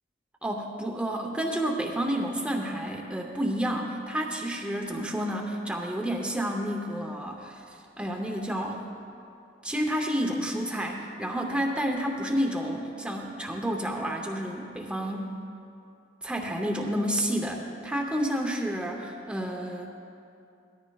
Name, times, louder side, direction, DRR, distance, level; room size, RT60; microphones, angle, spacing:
voice 1, 0.4-8.8 9.6-15.4 16.2-19.9, equal, 5° right, 1 dB, 0.7 m, -30 dB
17.5 x 13.5 x 2.3 m, 2.6 s
head